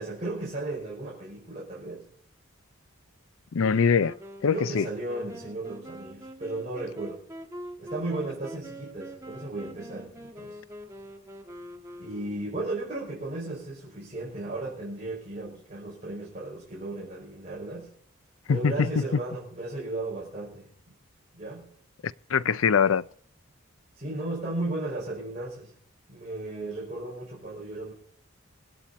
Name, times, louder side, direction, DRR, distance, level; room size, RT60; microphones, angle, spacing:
voice 1, 0.0-2.0 4.5-7.2 7.8-10.6 12.0-17.9 18.5-20.7 21.3-21.7 23.9-25.7 26.1-27.9, right 2 dB, 35° right, 6.0 m, -35 dB
voice 2, 3.5-4.2 4.4-4.9 18.5-18.7 22.3-23.0, left 6 dB, 75° left, 0.5 m, -22 dB
Wind instrument woodwind instrument, 3.6-12.6, equal, 15° right, 1.5 m, -44 dB
25.5 x 9.0 x 4.2 m
head